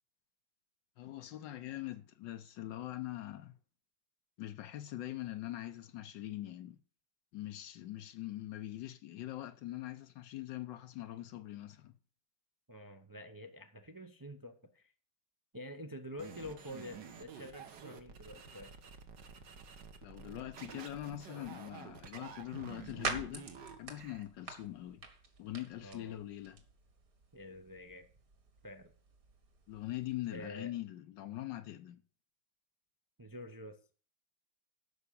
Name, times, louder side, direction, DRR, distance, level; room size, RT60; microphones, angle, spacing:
voice 1, 1.0-3.6 4.4-6.8 7.3-11.9 20.0-23.5 23.8-25.0 25.4-26.6 29.7-32.0, left 14 dB, 75° left, 1.4 m, -43 dB
voice 2, 12.7-14.9 15.5-18.7 25.8-26.2 27.3-28.0 28.6-28.9 30.3-30.7 33.2-33.9, left 1 dB, 30° right, 0.3 m, -48 dB
sound 1, 16.2-24.2, right 6 dB, 70° right, 1.8 m, -50 dB
sound 2, 21.8-30.5, right 4 dB, 50° right, 2.1 m, -47 dB
12.0 x 5.0 x 8.4 m
omnidirectional pair, 2.0 m